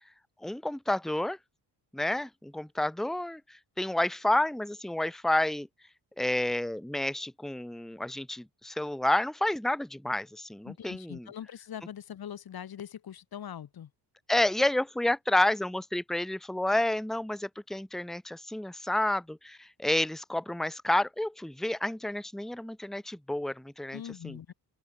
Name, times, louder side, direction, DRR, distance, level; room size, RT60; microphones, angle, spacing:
voice 1, 0.4-1.4 1.9-5.7 6.2-11.3 14.3-24.4, left 1 dB, ahead, 1.3 m, -30 dB
voice 2, 10.7-13.9 23.9-24.5, left 9 dB, 55° left, 4.0 m, -42 dB
open air
cardioid pair, 145°, 43 cm